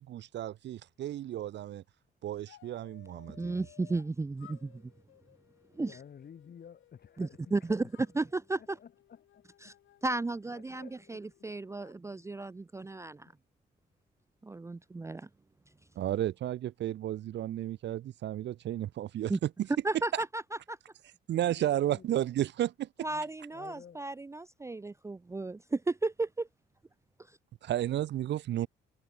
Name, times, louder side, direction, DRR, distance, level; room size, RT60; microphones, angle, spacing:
voice 1, 0.0-1.8 2.2-3.6 16.0-19.7 20.1-20.2 21.3-22.9 27.6-28.7, right 12 dB, 65° right, 0.6 m, -33 dB
sound 1, 2.4-4.1 4.4-7.5 7.9-12.0, left 13 dB, 80° left, 3.7 m, -60 dB
voice 2, 3.4-4.8 5.7-6.0 7.2-7.8 8.2-8.8 9.6-9.7 10.0-13.3 14.4-15.3 19.3-19.4 19.8-20.4 20.7-20.8 23.0-26.5, right 3 dB, 15° right, 0.5 m, -34 dB
voice 3, 5.7-7.4 7.7-7.9 8.6-9.8 10.5-11.5 12.1-12.4 21.3-22.3 23.1-24.1, left 8 dB, 50° left, 4.5 m, -53 dB
cardioid pair, 90°, 20 cm